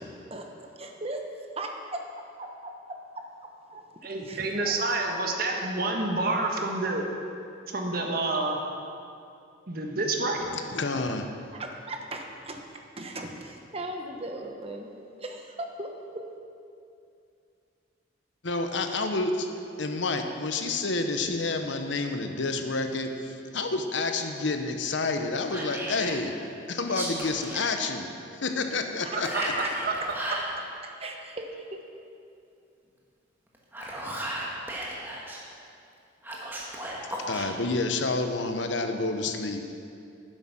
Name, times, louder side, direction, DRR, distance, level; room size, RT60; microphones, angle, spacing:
voice 1, 0.3-1.2 1.6-2.0 2.4-3.2 3.7-3.8 4.2-4.7 11.5-12.6 13.0-14.9 15.2-16.3 29.0-29.5 31.0-31.7, right 2 dB, 30° right, 3 dB, 1.1 m, -38 dB
voice 2, 4.0-7.0 7.7-8.6 9.7-10.4 29.3-29.4 29.8-29.9, right 2 dB, 50° right, 2 dB, 1.4 m, -28 dB
voice 3, 10.4-11.3 18.4-19.5 19.8-26.4 26.7-29.5 37.2-39.7, left 3 dB, 75° left, 6 dB, 1.0 m, -29 dB
Whispering, 25.5-26.2 26.8-27.7 29.2-30.5 33.5-35.4 36.2-37.5, right 1 dB, 10° right, 1.7 m, -35 dB
11.5 x 9.9 x 6.0 m, 2.5 s
head